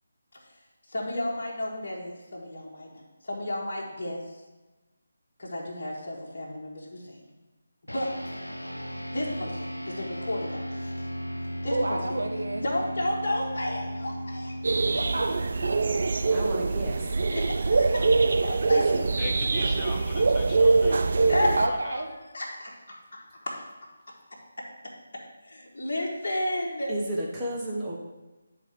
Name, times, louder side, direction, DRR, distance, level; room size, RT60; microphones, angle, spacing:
voice 1, 0.9-4.2 5.4-7.2 7.9-8.4 9.1-11.1 11.6-12.0 12.6-14.5 14.9-15.0 17.3-18.0 18.4-19.0 21.3-21.6 22.3-23.7 25.1-26.9, left 1 dB, 50° left, -4 dB, 1.4 m, -32 dB
sound 1, 7.9-17.5, equal, 90° left, 0.7 m, -37 dB
voice 2, 11.7-12.6 14.9-15.7 21.6-22.1, right 1 dB, 70° right, 2 dB, 1.2 m, -30 dB
sound 2, 14.6-21.7, right 3 dB, 50° right, 0.4 m, -24 dB
voice 3, 16.3-17.1 18.0-18.1 18.7-19.0 26.9-28.0, right 1 dB, 10° right, -6 dB, 1.2 m, -33 dB
voice 4, 19.2-21.0 21.6-22.1, left 4 dB, 25° left, 3 dB, 0.7 m, -39 dB
9.6 x 3.8 x 4.6 m, 1.1 s
figure-of-eight pair, 155°, 0 cm